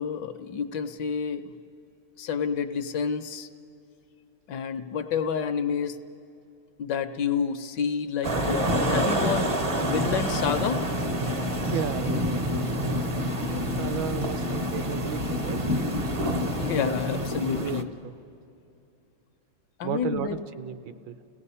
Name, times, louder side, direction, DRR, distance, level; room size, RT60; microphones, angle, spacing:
voice 1, 0.0-1.5 2.2-3.5 4.5-6.0 6.8-10.8 16.5-17.9 19.8-20.4, left 7 dB, 70° left, 9 dB, 1.2 m, -29 dB
sound 1, 8.2-17.8, equal, 40° right, 0.5 m, -27 dB
voice 2, 11.7-13.0 13.4-15.6 16.7-17.1 17.4-18.1 19.8-21.2, right 7 dB, 70° right, 11 dB, 1.3 m, -35 dB
30.0 x 17.5 x 5.5 m, 2.6 s
omnidirectional pair, 2.2 m